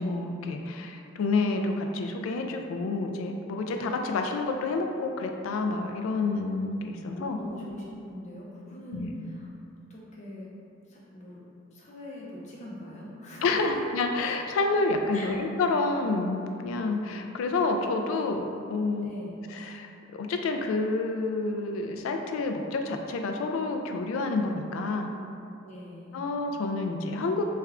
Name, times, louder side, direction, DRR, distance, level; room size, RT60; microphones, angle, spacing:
voice 1, 0.0-7.4 8.9-9.3 13.4-19.1 19.5-25.1 26.1-27.4, left 3 dB, 80° left, 4 dB, 0.3 m, -29 dB
voice 2, 7.1-9.5 9.9-10.5 10.9-11.4 11.7-13.8 15.1-15.3 19.0-19.4 25.6-26.3, left 1 dB, 35° left, -5 dB, 0.6 m, -42 dB
3.2 x 2.3 x 3.6 m, 2.6 s
head